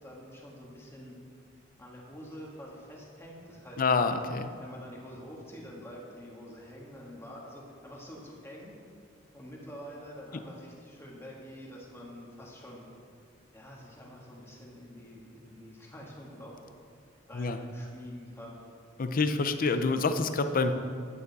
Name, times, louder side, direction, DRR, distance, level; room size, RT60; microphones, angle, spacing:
voice 1, 0.0-1.2 1.8-3.8 4.6-8.7 9.3-12.8 13.5-16.6 17.3-18.6, equal, 15° left, -3 dB, 1.6 m, -46 dB
voice 2, 3.8-4.5 10.3-10.4 17.3-17.6 19.0-20.7, left 4 dB, 45° left, 9 dB, 0.5 m, -27 dB
9.7 x 8.8 x 4.0 m, 2.2 s
head